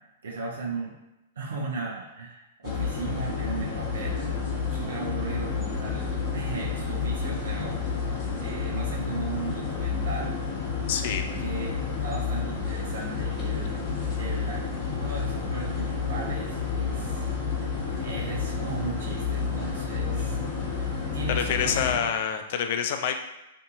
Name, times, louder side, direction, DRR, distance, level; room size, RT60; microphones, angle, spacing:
voice 1, 0.2-1.0 1.4-4.3 4.7-10.4 11.4-13.8 14.1-14.6 14.9-17.3 18.0-20.4 20.6-22.1, right 3 dB, 70° right, -3 dB, 0.6 m, -36 dB
sound 1, 2.6-22.0, left 5 dB, 35° left, 0.8 m, -30 dB
voice 2, 10.9-11.2 21.3-23.2, left 8 dB, 55° left, 6 dB, 0.3 m, -27 dB
2.6 x 2.6 x 2.4 m, 0.96 s
hypercardioid pair, 110°, 0 cm